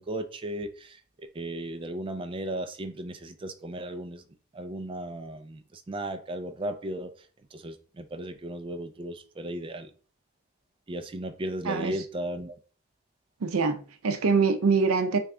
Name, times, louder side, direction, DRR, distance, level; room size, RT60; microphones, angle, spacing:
voice 1, 0.0-4.2 4.5-7.3 7.5-9.9 10.9-12.6, right 1 dB, 25° right, 0.3 m, -36 dB
voice 2, 13.4-15.2, right 4 dB, 80° right, 0.5 m, -24 dB
3.3 x 2.3 x 3.6 m
head